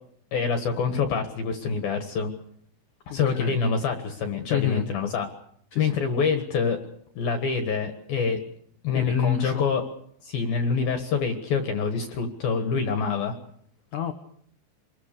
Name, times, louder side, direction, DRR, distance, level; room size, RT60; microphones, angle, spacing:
voice 1, 0.3-2.3 3.1-5.3 5.8-6.8 7.2-8.4 8.8-9.8 10.2-13.3, left 5 dB, 60° left, 6 dB, 2.9 m, -26 dB
voice 2, 3.1-3.6 4.5-4.9 5.7-6.0 8.9-9.6 13.9-14.1, left 11 dB, 85° left, 7 dB, 1.7 m, -30 dB
27.0 x 21.5 x 6.8 m, 0.66 s
omnidirectional pair, 5.7 m